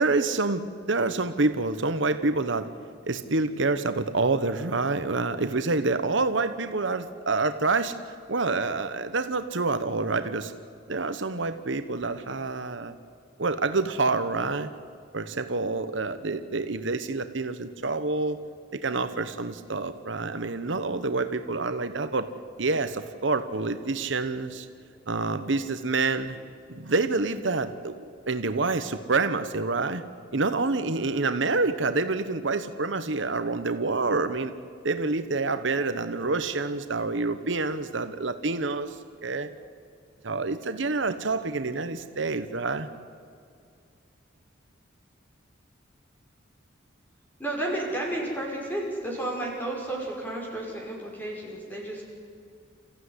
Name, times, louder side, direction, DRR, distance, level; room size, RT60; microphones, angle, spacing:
voice 1, 0.0-2.7 3.1-8.0 8.3-10.5 10.9-12.9 13.4-14.7 15.1-18.4 18.7-22.3 22.6-24.7 25.1-26.4 26.7-30.0 30.3-34.5 34.8-39.0 39.2-39.5 40.2-42.9, right 3 dB, 70° right, 10 dB, 1.1 m, -27 dB
voice 2, 47.4-52.0, right 1 dB, 10° left, -2 dB, 5.9 m, -32 dB
28.5 x 15.0 x 9.9 m, 2.4 s
head